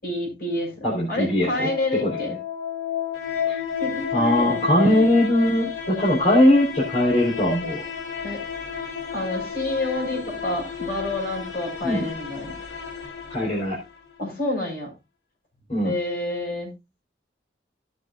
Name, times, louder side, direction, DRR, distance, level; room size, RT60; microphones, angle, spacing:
voice 1, 0.0-2.3 3.8-5.1 8.2-8.4 9.1-12.6 14.2-14.9 15.8-16.7, left 1 dB, 55° left, 0 dB, 7.1 m, -28 dB
voice 2, 0.8-2.2 3.5-3.6 4.1-7.9 11.8-12.0 13.3-13.8 15.7-15.9, left 1 dB, 40° left, -5 dB, 4.6 m, -20 dB
sound 1, 1.2-14.2, left 7 dB, 85° left, 4.2 m, -32 dB
17.5 x 7.3 x 2.6 m, 0.24 s
head